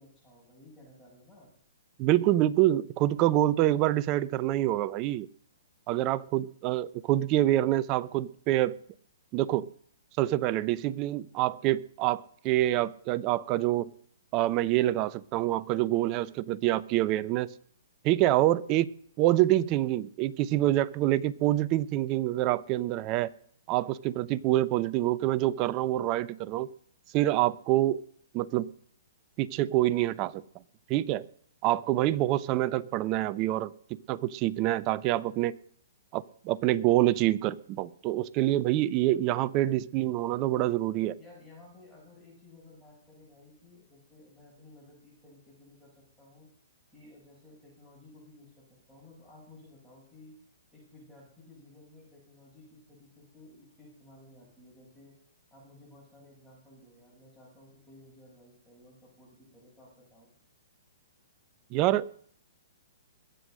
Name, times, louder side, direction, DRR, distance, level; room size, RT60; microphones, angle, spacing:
voice 1, 0.0-1.5 41.2-46.5 46.9-50.3 50.7-55.2 55.5-60.3, left 2 dB, 5° left, -6 dB, 6.6 m, -55 dB
voice 2, 2.0-5.3 5.9-8.7 9.3-9.7 10.2-13.9 14.3-17.5 18.0-18.9 19.2-23.3 23.7-26.7 27.1-28.0 28.3-28.7 29.4-30.4 30.9-31.2 31.6-33.7 34.1-35.5 36.1-41.2 61.7-62.1, right 15 dB, 35° right, 17 dB, 0.7 m, -26 dB
21.0 x 8.0 x 6.4 m, 0.62 s
hypercardioid pair, 130°, 0 cm